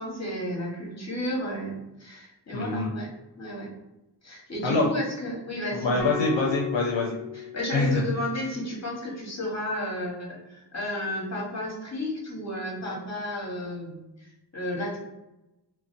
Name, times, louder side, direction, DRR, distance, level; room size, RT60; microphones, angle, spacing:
voice 1, 0.0-3.1 3.4-3.7 4.2-6.2 7.3-15.0, left 1 dB, 35° left, -3 dB, 1.0 m, -33 dB
voice 2, 2.5-2.9 4.6-4.9 5.7-7.2 7.7-8.0, left 2 dB, 75° left, -1 dB, 0.5 m, -25 dB
sound 1, 6.0-8.3, left 11 dB, 5° left, 0.5 m, -35 dB
2.5 x 2.1 x 2.4 m, 0.95 s
wide cardioid pair, 45°, 45 cm